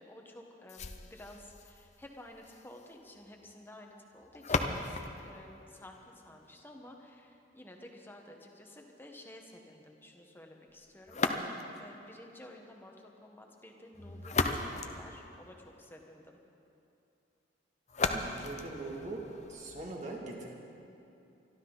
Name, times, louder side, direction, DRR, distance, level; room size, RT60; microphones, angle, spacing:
voice 1, 0.0-5.0 5.2-11.2 11.8-16.4, left 1 dB, 10° left, 2 dB, 1.3 m, -52 dB
Punching with ivy, 0.7-6.7 11.1-11.9 13.9-15.9 17.9-19.9, left 3 dB, 35° left, 0.8 m, -37 dB
voice 2, 18.1-20.5, right 2 dB, 40° right, -1 dB, 2.3 m, -41 dB
25.0 x 12.5 x 4.0 m, 2.8 s
head